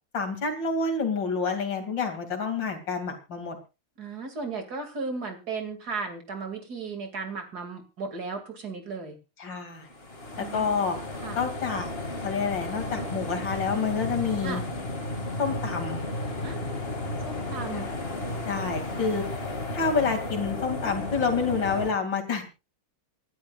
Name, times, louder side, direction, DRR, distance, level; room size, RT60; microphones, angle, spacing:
voice 1, 0.1-3.6 9.4-9.9 10.4-11.0 11.3-11.9 12.2-14.6 15.4-16.0 17.7-17.8 18.5-19.2 19.7-22.5, left 5 dB, 55° left, 5 dB, 3.2 m, -28 dB
voice 2, 4.0-9.2 10.3-10.7 11.2-11.4 14.4-14.6 16.4-16.6 17.2-17.9, right 4 dB, 45° right, 5 dB, 2.9 m, -35 dB
sound 1, 9.9-21.9, left 2 dB, 25° left, 2.3 m, -33 dB
27.0 x 11.5 x 2.4 m, 0.29 s
omnidirectional pair, 2.4 m